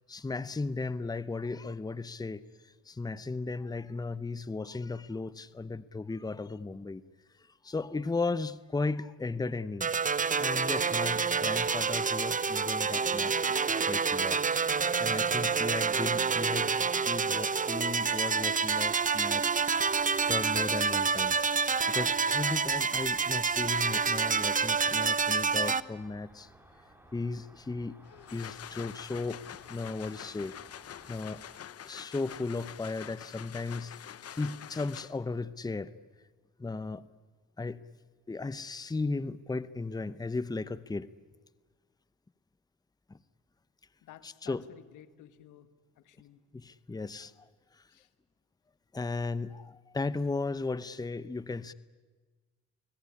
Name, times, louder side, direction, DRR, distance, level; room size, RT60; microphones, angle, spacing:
voice 1, 0.1-7.0 7.4-9.9 10.4-13.3 13.9-14.4 15.0-19.9 20.3-21.5 21.9-26.5 27.1-28.0 28.3-29.4 29.7-30.6 31.1-31.4 31.8-33.9 34.3-35.9 36.6-37.1 37.6-37.8 38.3-41.1 43.1-43.2 44.2-44.6 46.5-47.8 48.9-51.7, left 3 dB, 15° left, 16 dB, 0.8 m, -36 dB
sound 1, 9.8-25.8, right 5 dB, 25° right, 0.8 m, -28 dB
Cricket, 17.7-31.6, right 1 dB, 10° right, 4.9 m, -58 dB
sound 2, 28.0-35.4, left 10 dB, 55° left, 0.9 m, -46 dB
voice 2, 44.0-45.7 46.0-46.4 47.9-48.1, left 11 dB, 85° left, 11 dB, 1.7 m, -53 dB
29.5 x 19.0 x 9.9 m, 1.3 s
cardioid pair, 90°, 30 cm